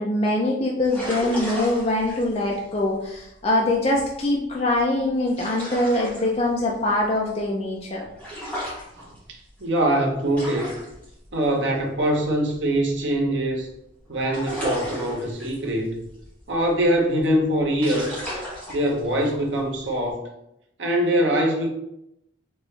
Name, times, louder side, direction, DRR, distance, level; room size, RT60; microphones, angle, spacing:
voice 1, 0.0-8.0, left 1 dB, 30° left, -2 dB, 0.5 m, -23 dB
sound 1, 0.8-13.7 14.0-20.1, equal, 10° left, 1.4 m, -37 dB
voice 2, 8.9-10.7 11.3-13.7 14.1-16.0 16.5-18.3 18.7-20.3 20.8-21.7, right 1 dB, 75° right, 0 dB, 0.9 m, -23 dB
4.4 x 3.1 x 3.2 m, 0.82 s
head